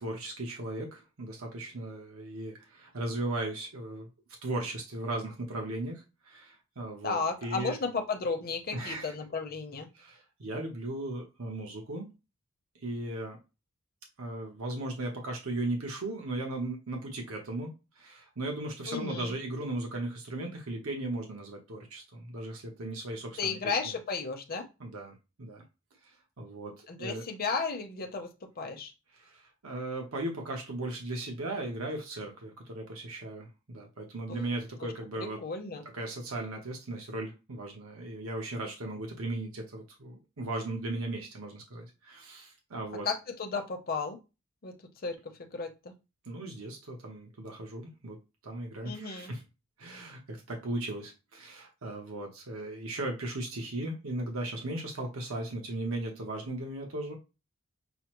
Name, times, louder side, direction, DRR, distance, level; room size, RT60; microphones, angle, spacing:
voice 1, 0.0-4.1 4.4-7.8 8.7-9.1 9.9-12.1 12.8-13.4 14.2-23.7 24.8-25.6 26.1-27.2 29.1-35.4 35.9-43.1 46.2-48.2 48.4-49.4 49.8-57.2, right 2 dB, 75° right, 2 dB, 0.9 m, -37 dB
voice 2, 7.0-9.9 18.9-19.3 23.4-24.7 26.9-28.9 34.3-34.5 34.8-34.9 35.2-35.8 43.0-44.2 44.6-44.8 45.0-45.9 48.8-49.3, left 4 dB, 45° left, 4 dB, 0.7 m, -34 dB
6.0 x 2.0 x 3.0 m, 0.27 s
head